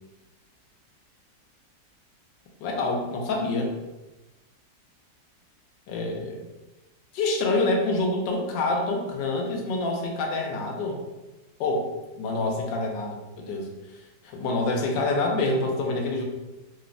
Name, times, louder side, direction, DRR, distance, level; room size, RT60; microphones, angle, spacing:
voice 1, 2.6-3.7 5.9-6.4 7.1-11.0 11.6-16.2, left 2 dB, 90° left, 1 dB, 1.3 m, -27 dB
3.4 x 2.0 x 2.4 m, 1.1 s
omnidirectional pair, 1.9 m